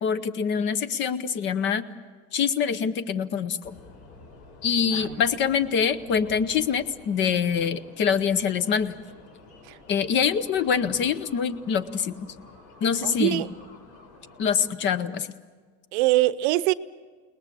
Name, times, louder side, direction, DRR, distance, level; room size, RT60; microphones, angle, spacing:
voice 1, 0.0-1.8 2.3-3.8 4.6-8.9 9.9-12.3 12.8-13.4 14.4-15.4, left 7 dB, 30° left, 15 dB, 0.7 m, -25 dB
sound 1, 3.6-14.7, left 3 dB, 55° left, 5.7 m, -50 dB
voice 2, 4.9-5.2 9.6-9.8 13.0-13.5 15.9-16.7, right 17 dB, 70° right, 14 dB, 0.8 m, -23 dB
29.5 x 19.5 x 7.5 m, 1.5 s
cardioid pair, 170°, 35 cm